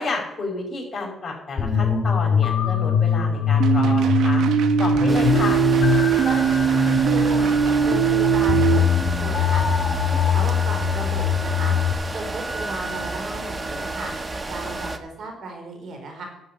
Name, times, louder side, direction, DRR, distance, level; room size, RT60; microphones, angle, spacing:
voice 1, 0.0-4.4 4.8-5.6, left 3 dB, 30° left, 0 dB, 5.3 m, -30 dB
sound 1, 1.6-11.9, left 7 dB, 50° left, 3.1 m, -22 dB
sound 2, 3.6-8.8, right 9 dB, 80° right, 1.0 m, -20 dB
sound 3, 5.1-15.0, right 2 dB, 25° right, 1.2 m, -31 dB
voice 2, 6.2-9.6 10.0-11.8 12.1-14.1 14.5-16.2, right 3 dB, 65° right, 3 dB, 4.2 m, -35 dB
11.5 x 7.4 x 8.5 m, 0.85 s
cardioid pair, 90°, 0 cm